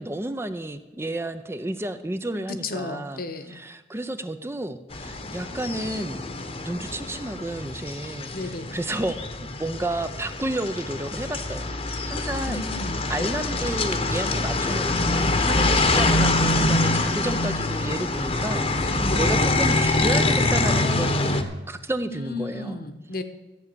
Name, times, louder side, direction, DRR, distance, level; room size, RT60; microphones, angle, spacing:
voice 1, 0.0-3.2 3.5-6.2 6.6-9.2 9.6-12.6 13.1-21.4 21.7-22.8, right 1 dB, 15° right, 9 dB, 0.5 m, -31 dB
voice 2, 2.5-3.6 8.3-8.7 12.5-13.4 19.1-19.4 22.1-23.2, left 3 dB, 55° left, 8 dB, 1.1 m, -34 dB
sound 1, 4.9-21.4, left 2 dB, 35° left, 1.0 m, -25 dB
14.0 x 8.2 x 6.8 m, 1.1 s
head